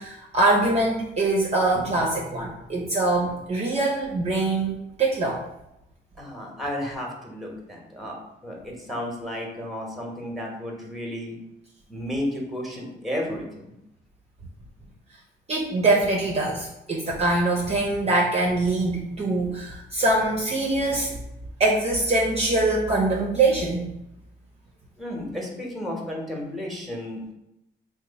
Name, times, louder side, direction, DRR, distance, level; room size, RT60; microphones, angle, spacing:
voice 1, 0.0-5.4 15.5-21.1 21.6-23.9, right 2 dB, 30° right, -3 dB, 0.6 m, -23 dB
voice 2, 6.2-8.2 8.4-11.4 11.9-13.7 25.0-27.3, left 1 dB, ahead, -1 dB, 0.9 m, -33 dB
2.9 x 2.1 x 4.0 m, 0.87 s
cardioid pair, 90°, 20 cm